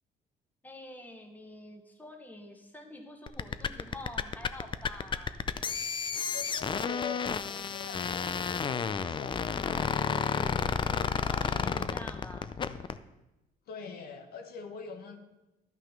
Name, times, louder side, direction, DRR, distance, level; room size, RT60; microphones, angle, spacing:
voice 1, 0.6-5.4 11.1-12.6, left 1 dB, 10° left, 3 dB, 1.5 m, -47 dB
sound 1, 3.3-13.0, left 6 dB, 30° left, 0.5 m, -31 dB
voice 2, 6.3-10.6 11.5-12.0 13.7-15.2, left 6 dB, 65° left, 5 dB, 1.2 m, -44 dB
11.5 x 6.1 x 5.9 m, 0.98 s
cardioid pair, 110°, 17 cm